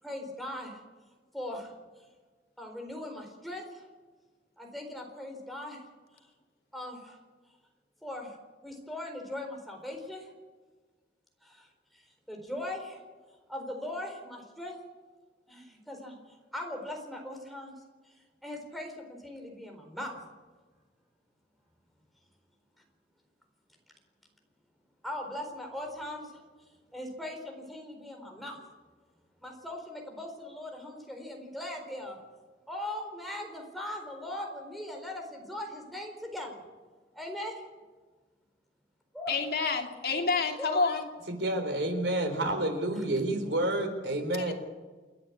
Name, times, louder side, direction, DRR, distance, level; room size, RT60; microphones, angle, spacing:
voice 1, 0.0-0.8 1.3-1.7 2.6-3.9 4.6-5.8 6.7-7.2 8.0-8.4 8.6-10.3 11.4-13.0 13.5-14.8 15.5-17.7 18.1-20.2 25.0-26.4 26.9-28.6 29.4-32.2 32.7-36.6 37.1-37.6 39.1-39.3 40.6-40.8, left 1 dB, ahead, 1 dB, 4.2 m, -40 dB
voice 2, 39.3-41.1 44.5-44.6, left 4 dB, 60° left, 3 dB, 2.7 m, -28 dB
voice 3, 41.3-44.5, right 1 dB, 90° right, 6 dB, 4.1 m, -29 dB
29.0 x 10.5 x 8.5 m, 1.4 s
head